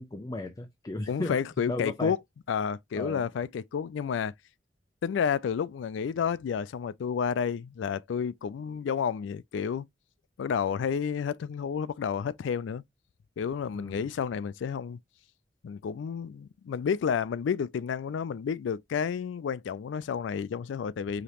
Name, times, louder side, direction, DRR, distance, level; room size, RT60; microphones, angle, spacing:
voice 1, 0.0-1.4 1.7-2.2 2.9-3.3 13.7-14.1, left 2 dB, 20° left, 0.5 m, -35 dB
voice 2, 1.1-2.2 2.5-4.3 5.0-9.9 10.4-12.8 13.4-15.0 15.6-21.2, left 7 dB, 90° left, 0.3 m, -30 dB
5.0 x 2.9 x 2.9 m
head